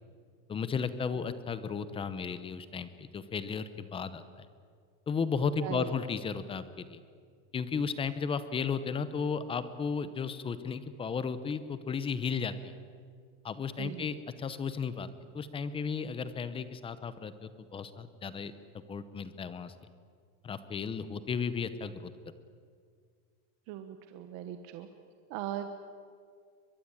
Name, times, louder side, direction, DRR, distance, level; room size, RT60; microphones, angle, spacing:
voice 1, 0.5-4.5 5.1-7.0 7.5-12.7 13.4-15.1 15.3-18.5 18.9-19.7 20.4-22.1, left 5 dB, 15° left, 13 dB, 0.8 m, -34 dB
voice 2, 5.6-6.0 13.8-14.1 23.7-24.9 25.3-25.7, right 11 dB, 50° right, 7 dB, 1.4 m, -39 dB
23.0 x 22.0 x 8.9 m, 2.1 s
cardioid pair, 175°, 38 cm